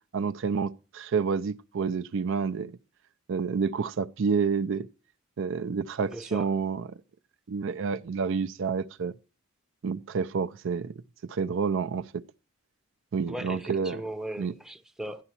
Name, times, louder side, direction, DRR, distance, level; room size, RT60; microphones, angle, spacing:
voice 1, 0.1-2.7 3.3-4.9 5.4-6.9 7.5-9.1 9.8-10.9 11.2-12.2 13.1-14.0 14.4-14.5, right 5 dB, 60° right, 0.4 m, -29 dB
voice 2, 6.1-6.5 13.3-15.2, right 1 dB, 5° right, 0.6 m, -38 dB
12.5 x 9.8 x 2.8 m
head